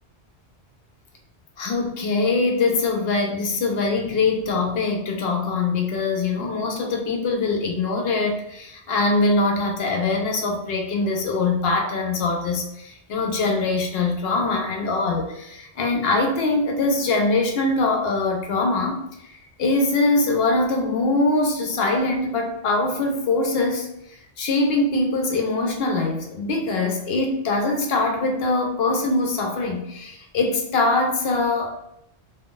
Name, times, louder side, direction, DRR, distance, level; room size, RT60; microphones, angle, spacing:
voice 1, 1.6-19.0 19.6-23.9 24.4-31.7, left 3 dB, 70° left, 2 dB, 0.8 m, -23 dB
2.4 x 2.3 x 3.6 m, 0.79 s
omnidirectional pair, 1.1 m